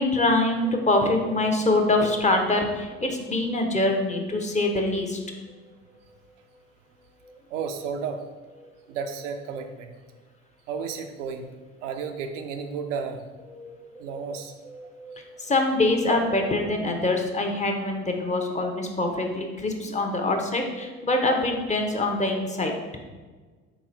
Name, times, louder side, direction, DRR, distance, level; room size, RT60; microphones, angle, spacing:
voice 1, 0.0-5.2 13.5-13.8 14.1-14.2 14.6-22.7, left 2 dB, 20° left, 3 dB, 0.7 m, -24 dB
voice 2, 7.5-8.2 8.9-9.9 10.7-11.5 11.8-13.3 14.0-14.5 15.3-15.4, right 6 dB, 75° right, 6 dB, 0.5 m, -32 dB
4.2 x 3.0 x 3.8 m, 1.4 s
hypercardioid pair, 60°, 37 cm